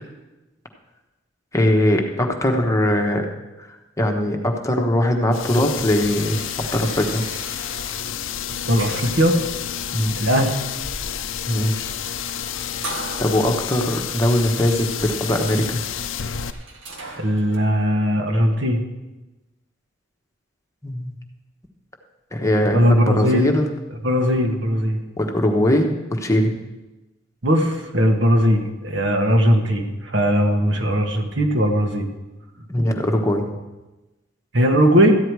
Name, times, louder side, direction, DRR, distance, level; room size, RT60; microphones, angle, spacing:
voice 1, 1.5-3.3 3.6-6.4 6.7-7.2 9.9-10.2 11.5-11.9 13.2-15.8 20.8-21.2 22.3-23.7 25.2-26.5 32.7-33.5, left 1 dB, 15° left, 3 dB, 1.1 m, -20 dB
sound 1, 5.3-16.5, left 9 dB, 85° left, 0.5 m, -30 dB
sound 2, 5.6-17.6, right 2 dB, 85° right, 1.8 m, -40 dB
voice 2, 8.7-9.4 10.2-10.5 17.2-18.8 22.7-23.5 24.0-25.0 27.4-32.1 34.5-35.2, equal, 65° right, 3 dB, 1.4 m, -19 dB
14.0 x 9.8 x 4.7 m, 1.1 s
head